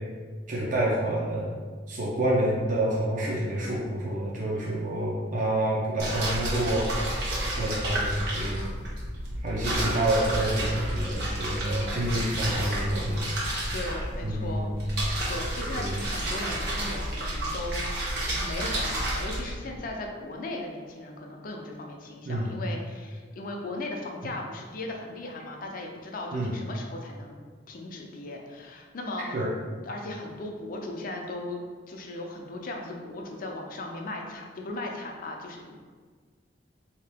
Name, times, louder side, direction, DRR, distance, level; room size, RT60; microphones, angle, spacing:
voice 1, 0.5-1.5 1.9-7.2 7.6-8.6 9.4-13.2 14.2-14.9 15.8-16.0 22.3-22.5 24.2-24.3 26.3-26.5 29.3-29.5, right 1 dB, 45° right, -5 dB, 0.6 m, -28 dB
voice 2, 4.5-5.0 12.1-12.5 13.7-27.4 27.7-29.4 29.9-31.6 31.9-35.8, left 2 dB, 50° left, 1 dB, 0.5 m, -37 dB
sound 1, 6.0-19.5, right 1 dB, 65° right, 1.1 m, -31 dB
3.6 x 2.8 x 3.4 m, 1.5 s
head